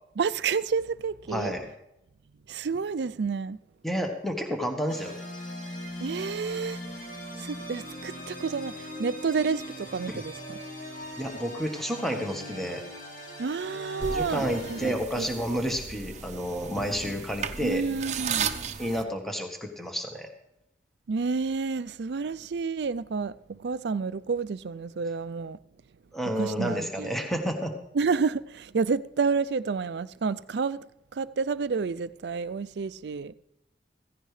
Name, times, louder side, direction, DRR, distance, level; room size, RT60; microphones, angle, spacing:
voice 1, 0.2-1.5 2.5-3.6 6.0-6.8 7.4-10.6 13.4-14.4 14.7-15.3 17.6-18.5 21.1-25.6 26.4-27.1 27.9-30.8 31.1-33.3, right 5 dB, 75° right, 0.4 m, -30 dB
voice 2, 1.3-1.7 3.8-5.2 10.1-10.2 11.2-12.8 14.1-17.8 18.8-20.3 26.1-27.7, equal, ahead, 1.3 m, -30 dB
sound 1, 4.9-14.9, equal, 45° left, 2.5 m, -40 dB
sound 2, 14.0-19.0, right 6 dB, 40° right, 0.8 m, -34 dB
15.5 x 15.5 x 3.3 m
head